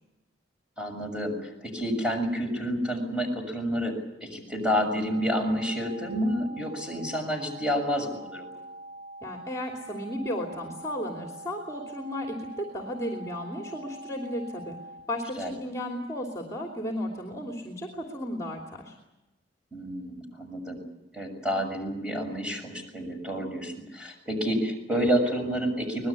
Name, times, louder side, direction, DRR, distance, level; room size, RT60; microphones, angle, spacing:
voice 1, 0.8-8.6 15.4-15.5 19.7-20.8 21.1-26.1, equal, 5° right, 3 dB, 6.9 m, -29 dB
sound 1, 5.1-15.1, right 2 dB, 50° right, 4.0 m, -44 dB
voice 2, 9.2-14.8 15.1-19.0, left 1 dB, 15° left, 2 dB, 3.0 m, -34 dB
25.0 x 21.0 x 8.5 m, 0.96 s
head